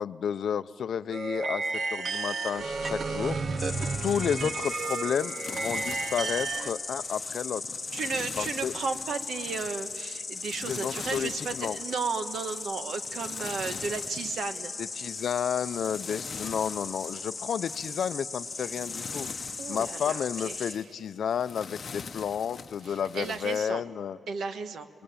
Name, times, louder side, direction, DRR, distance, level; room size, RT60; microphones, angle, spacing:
voice 1, 0.0-3.4 4.0-7.6 8.4-8.7 10.6-11.8 15.0-19.3 19.7-24.2, left 8 dB, 65° left, 14 dB, 0.5 m, -31 dB
sound 1, 1.1-6.7, right 4 dB, 50° right, 0.9 m, -32 dB
Insect, 3.6-20.7, left 4 dB, 25° left, 1.6 m, -38 dB
sound 2, 4.1-23.7, left 5 dB, 45° left, 0.8 m, -45 dB
voice 2, 7.9-14.7 19.6-20.8 22.8-23.8 24.3-24.9, right 5 dB, 70° right, 9 dB, 1.3 m, -34 dB
28.5 x 21.0 x 8.9 m, 2.4 s
wide cardioid pair, 170°, 0 cm